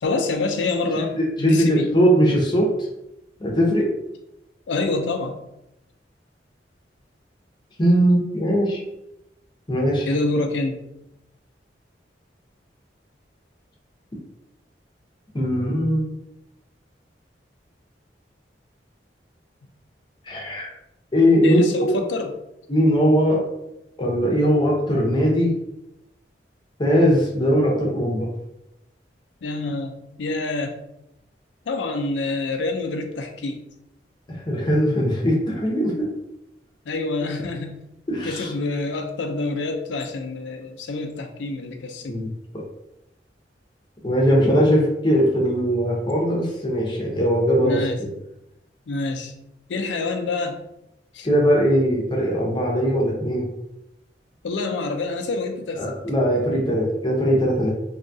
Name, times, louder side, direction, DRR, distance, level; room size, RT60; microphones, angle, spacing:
voice 1, 0.0-2.0 4.7-5.4 10.1-10.8 21.4-22.3 29.4-30.7 31.7-33.6 36.9-37.9 38.2-42.2 47.6-48.0 48.9-49.3 49.7-50.6 51.1-51.3 54.4-56.0, left 3 dB, 90° left, 5 dB, 0.4 m, -27 dB
voice 2, 1.0-2.7 3.4-3.9 7.8-8.8 9.7-10.1 15.3-16.2 20.3-20.7 21.1-21.9 22.7-23.4 24.0-25.5 26.8-28.3 34.3-36.1 38.1-38.5 42.1-42.3 44.0-48.1 51.2-53.4 55.8-57.7, equal, 25° left, -2 dB, 0.6 m, -20 dB
2.7 x 2.3 x 2.6 m, 0.86 s
head